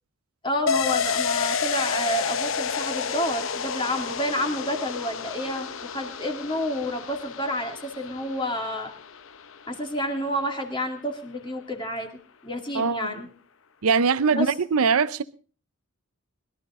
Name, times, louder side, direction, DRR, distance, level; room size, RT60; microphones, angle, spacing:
voice 1, 0.4-8.9 9.7-12.1 12.4-13.3 14.3-14.5, equal, 20° left, 2.3 m, -29 dB
sound 1, 0.7-10.1 10.4-10.5, left 6 dB, 65° left, 0.8 m, -30 dB
voice 2, 12.7-13.1 13.8-15.2, right 5 dB, 85° right, 0.6 m, -22 dB
21.5 x 13.0 x 3.7 m
head